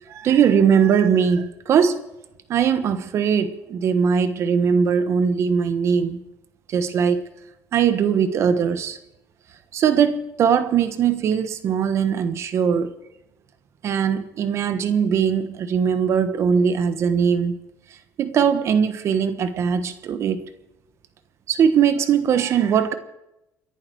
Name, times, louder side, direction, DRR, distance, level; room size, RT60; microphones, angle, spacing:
voice 1, 0.1-2.0 2.5-6.2 6.7-7.2 7.7-9.0 9.7-13.0 13.8-17.6 18.2-20.5 21.5-22.9, right 7 dB, 55° right, 1.3 m, -20 dB
28.0 x 11.0 x 4.7 m
cardioid pair, 115°, 6 cm